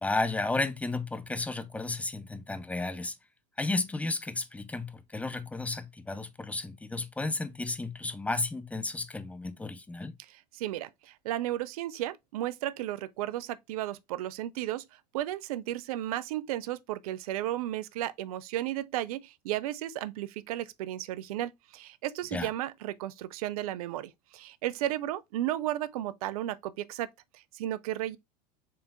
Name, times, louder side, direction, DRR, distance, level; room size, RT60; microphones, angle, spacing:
voice 1, 0.0-3.2 3.6-10.1 22.3-22.5, left 3 dB, 5° left, 0.4 m, -33 dB
voice 2, 10.3-14.9 15.1-28.2, right 13 dB, 60° right, 0.4 m, -34 dB
4.5 x 3.3 x 2.4 m
hypercardioid pair, 85°, 21 cm